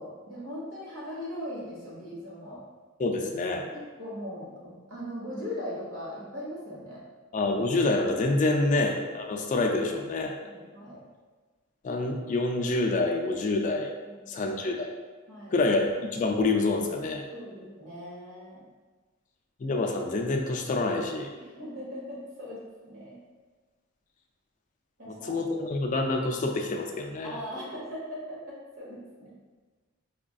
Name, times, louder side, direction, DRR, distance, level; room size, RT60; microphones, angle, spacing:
voice 1, 0.0-2.6 3.7-7.0 10.4-11.0 14.0-14.2 15.3-15.5 17.3-18.6 21.3-23.2 25.0-25.5 27.2-29.3, equal, 75° right, -6 dB, 1.2 m, -39 dB
voice 2, 3.0-3.6 7.3-10.3 11.8-13.9 14.3-14.9 15.5-17.2 19.6-21.3 25.1-27.4, left 2 dB, 40° left, 3 dB, 0.3 m, -27 dB
4.8 x 2.5 x 2.3 m, 1.4 s
head